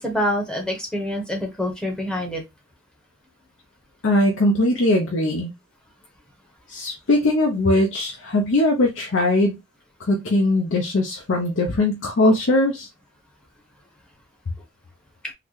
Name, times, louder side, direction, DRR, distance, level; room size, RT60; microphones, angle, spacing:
voice 1, 0.0-2.4, equal, 5° left, 1 dB, 0.8 m, -26 dB
voice 2, 4.0-5.5 6.7-9.6 10.1-12.9, left 1 dB, 65° left, 2 dB, 0.6 m, -20 dB
3.8 x 2.1 x 3.1 m, 0.21 s
head